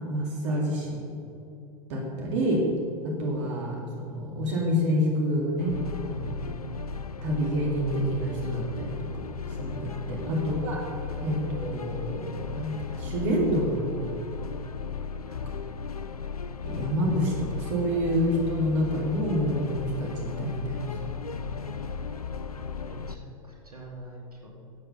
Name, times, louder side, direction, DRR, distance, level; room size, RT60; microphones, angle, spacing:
voice 1, 0.1-0.8 1.9-2.6 3.2-6.3 7.2-8.9 9.6-10.8 11.2-13.9 15.3-15.5 16.6-21.1, equal, 55° right, -1 dB, 2.2 m, -28 dB
sound 1, 5.6-23.2, left 5 dB, 80° left, 0.5 m, -36 dB
voice 2, 22.8-24.5, right 2 dB, 80° right, -2 dB, 2.5 m, -45 dB
12.5 x 7.8 x 5.6 m, 2.7 s
figure-of-eight pair, 90°, 19 cm